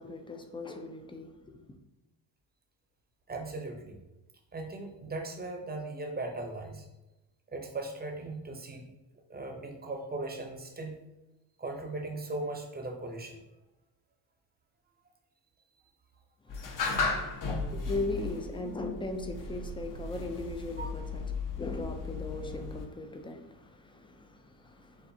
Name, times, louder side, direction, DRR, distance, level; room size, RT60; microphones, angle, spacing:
voice 1, 0.0-1.6 16.4-25.1, left 2 dB, 15° left, 0.3 m, -39 dB
voice 2, 3.3-4.0 4.5-6.9 7.5-8.9 9.3-10.9 11.6-13.4 16.9-17.1 20.8-20.9, right 2 dB, 20° right, 0.7 m, -38 dB
sound 1, 16.5-22.9, left 4 dB, 45° left, 0.7 m, -35 dB
6.8 x 2.4 x 2.7 m
cardioid pair, 110°, 46 cm